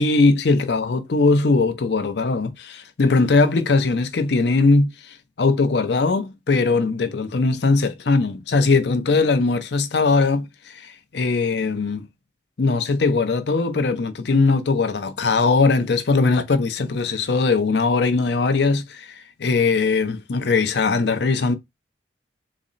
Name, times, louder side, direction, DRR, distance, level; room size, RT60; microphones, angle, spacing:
voice 1, 0.0-12.1 12.6-21.6, left 3 dB, 65° left, 0.5 m, -20 dB
4.1 x 2.0 x 3.8 m
head